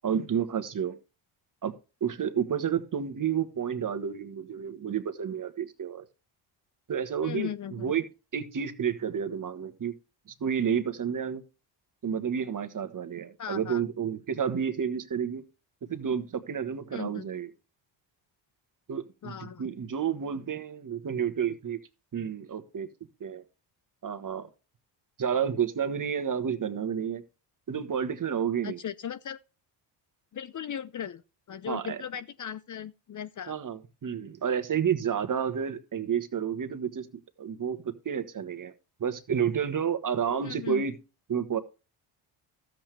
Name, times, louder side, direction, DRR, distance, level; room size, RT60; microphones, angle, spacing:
voice 1, 0.0-1.0 1.6-1.7 2.0-6.0 6.9-8.0 8.3-9.9 10.4-11.4 12.0-15.4 15.9-17.5 18.9-21.8 22.1-22.9 23.2-23.4 24.0-24.5 25.2-27.2 27.7-28.8 31.7-32.0 33.5-37.1 37.4-38.7 39.0-40.9 41.3-41.6, right 7 dB, 40° right, 1.5 m, -30 dB
voice 2, 7.2-7.9 13.4-13.8 16.9-17.2 19.2-19.6 28.6-29.4 30.3-31.2 31.5-33.5 40.4-40.8, left 9 dB, 40° left, 0.6 m, -37 dB
13.0 x 7.7 x 3.4 m
supercardioid pair, 70°, 50 cm